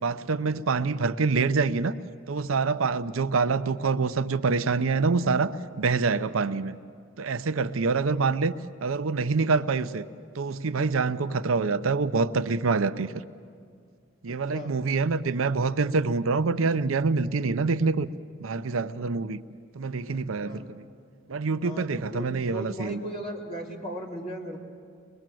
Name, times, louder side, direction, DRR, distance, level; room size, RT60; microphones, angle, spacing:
voice 1, 0.0-2.0 2.3-6.7 7.2-8.5 8.8-10.0 10.4-13.1 14.2-18.1 18.4-19.4 19.7-20.8 21.3-23.0, right 4 dB, 85° right, 12 dB, 0.6 m, -26 dB
voice 2, 14.3-14.7 20.4-20.7 21.6-24.6, right 1 dB, 30° left, -3 dB, 3.0 m, -37 dB
23.0 x 21.5 x 7.7 m, 2.2 s
head